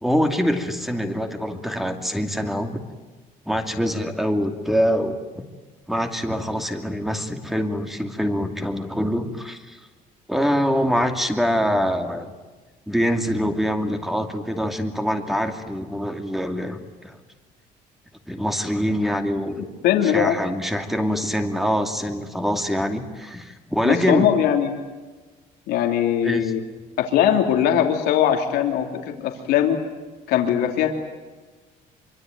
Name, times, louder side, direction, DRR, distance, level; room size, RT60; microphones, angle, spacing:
voice 1, 0.0-2.8 3.5-5.4 5.9-9.8 10.3-12.3 12.9-17.2 18.3-19.7 20.0-24.3 26.2-26.5, equal, ahead, 6 dB, 2.6 m, -24 dB
voice 2, 19.8-20.4 23.8-24.7 25.7-26.6 27.0-29.8 30.3-30.9, left 10 dB, 90° left, 3 dB, 3.0 m, -20 dB
25.5 x 24.0 x 9.3 m, 1.3 s
cardioid pair, 135°, 16 cm